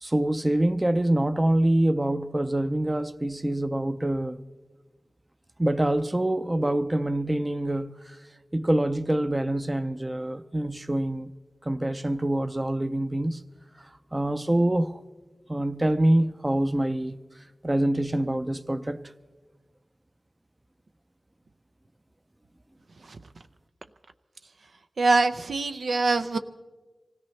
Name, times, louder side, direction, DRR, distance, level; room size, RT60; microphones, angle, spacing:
voice 1, 0.0-4.4 5.6-8.2 8.5-11.3 11.6-13.4 13.8-15.0 15.5-17.2 17.6-19.0, right 1 dB, 20° right, 0.5 m, -25 dB
voice 2, 25.0-26.4, right 3 dB, 85° right, 0.6 m, -23 dB
25.5 x 16.5 x 3.2 m
wide cardioid pair, 90°, 0 cm